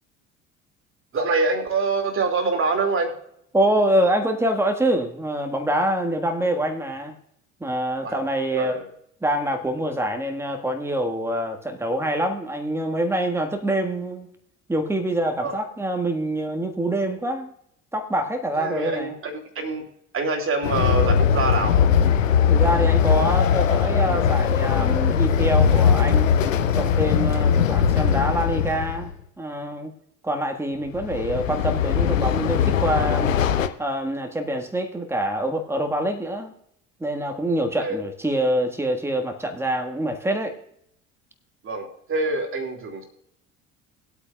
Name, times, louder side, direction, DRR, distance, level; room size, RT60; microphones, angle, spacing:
voice 1, 1.1-3.2 8.0-8.2 8.5-8.9 15.4-15.6 18.6-19.8 20.1-21.8 37.8-38.0 41.6-43.0, right 3 dB, 35° right, 2 dB, 2.5 m, -25 dB
voice 2, 3.5-7.1 7.6-8.8 9.2-14.3 14.7-17.5 17.9-19.1 22.5-26.3 26.7-29.9 30.2-33.3 33.8-36.5 37.0-40.6, right 1 dB, 5° right, 5 dB, 1.6 m, -25 dB
Train, 20.6-29.1 30.9-33.7, left 7 dB, 80° left, 0.7 m, -20 dB
20.5 x 8.4 x 2.3 m, 0.73 s
figure-of-eight pair, 60°, 38 cm